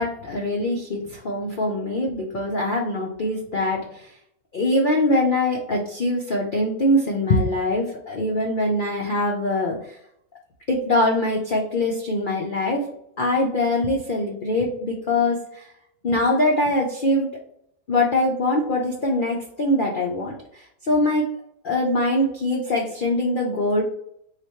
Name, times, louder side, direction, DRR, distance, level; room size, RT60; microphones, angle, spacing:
voice 1, 0.0-3.8 4.5-9.8 10.7-12.8 13.2-15.4 16.0-17.3 17.9-20.3 20.9-21.3 21.6-23.9, left 1 dB, 80° left, -1 dB, 0.4 m, -23 dB
3.2 x 2.5 x 4.3 m, 0.72 s
omnidirectional pair, 1.6 m